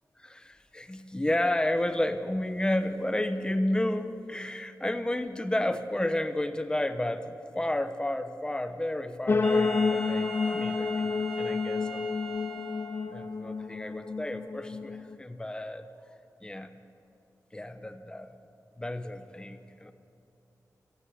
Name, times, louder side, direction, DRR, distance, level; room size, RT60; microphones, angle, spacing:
voice 1, 0.7-12.1 13.1-15.9 16.4-16.7 17.5-18.4 18.8-19.9, left 1 dB, 15° left, 9 dB, 1.0 m, -31 dB
sound 1, 9.3-15.2, left 4 dB, 35° left, 0.5 m, -29 dB
Wind instrument woodwind instrument, 9.4-13.3, equal, 5° right, 3.1 m, -39 dB
29.5 x 10.0 x 9.8 m, 2.8 s
wide cardioid pair, 140°, 7 cm